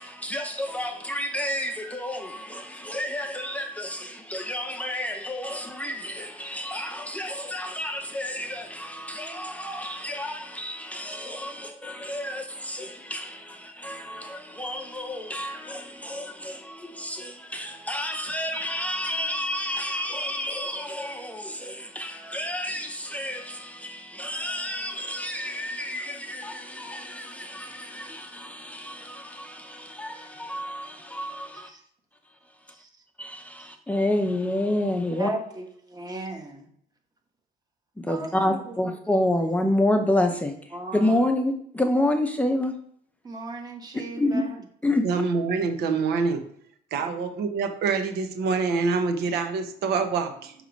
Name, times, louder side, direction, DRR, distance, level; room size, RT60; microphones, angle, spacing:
voice 1, 0.0-31.7 33.2-35.3 38.0-42.7 43.9-44.5 44.8-45.1, left 1 dB, 10° left, 4 dB, 0.7 m, -29 dB
voice 2, 35.2-35.6 35.9-36.6 38.1-38.6 40.7-41.1 43.2-44.5 46.9-47.1, right 2 dB, 25° right, 3 dB, 1.3 m, -35 dB
voice 3, 45.0-46.4 46.9-50.5, right 4 dB, 75° right, 7 dB, 0.9 m, -26 dB
6.4 x 3.1 x 5.1 m, 0.65 s
cardioid pair, 110°, 17 cm